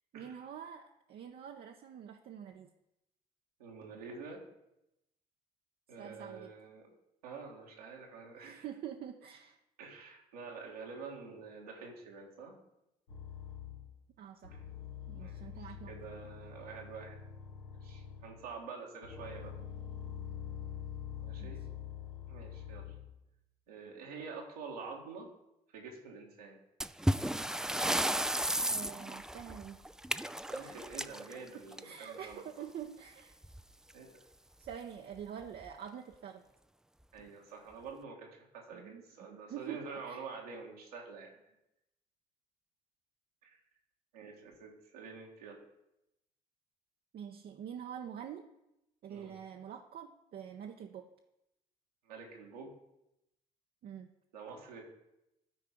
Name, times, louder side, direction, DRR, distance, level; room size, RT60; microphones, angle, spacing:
voice 1, 0.1-2.7 6.0-6.5 8.4-9.6 14.2-14.6 15.1-15.9 21.4-21.5 28.7-29.8 30.6-30.8 31.8-33.4 34.6-36.4 38.7-39.0 39.5-40.3 47.1-48.5 49.0-51.1 53.8-54.1, right 9 dB, 55° right, 3 dB, 0.7 m, -46 dB
voice 2, 3.6-4.4 5.9-6.9 7.2-8.6 9.8-12.6 14.5-14.6 15.2-17.2 17.8-19.5 21.2-21.6 22.3-22.9 23.7-25.3 25.7-26.6 30.5-32.4 33.9-34.2 37.1-41.4 43.4-43.6 44.1-45.6 49.1-49.3 52.0-52.7 54.3-54.8, right 4 dB, 90° right, -1 dB, 1.7 m, -47 dB
sound 1, 13.1-14.0 14.4-18.5 19.0-23.2, left 9 dB, 80° left, 1.2 m, -45 dB
sound 2, 26.8-32.2 33.4-33.6 33.9-34.0 34.7-34.8 35.4-35.7, right 1 dB, 5° right, 0.3 m, -34 dB
12.5 x 4.5 x 5.2 m, 0.88 s
hypercardioid pair, 55°, 19 cm